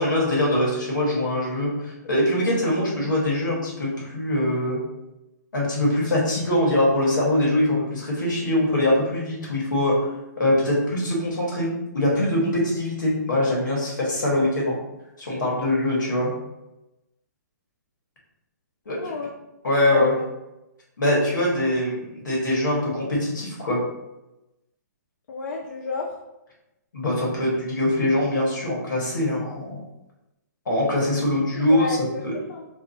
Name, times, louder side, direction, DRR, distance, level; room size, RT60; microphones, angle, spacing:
voice 1, 0.0-4.8 5.5-10.1 10.4-14.8 15.2-16.3 18.8-19.1 19.6-20.1 21.0-23.8 26.9-29.8 30.6-32.0 32.2-32.3, left 1 dB, 85° left, -4 dB, 1.3 m, -23 dB
voice 2, 18.9-19.3 19.9-20.3 25.3-26.1 31.6-32.7, left 3 dB, 70° left, -1 dB, 0.4 m, -32 dB
2.6 x 2.3 x 2.6 m, 0.94 s
hypercardioid pair, 145°, 10 cm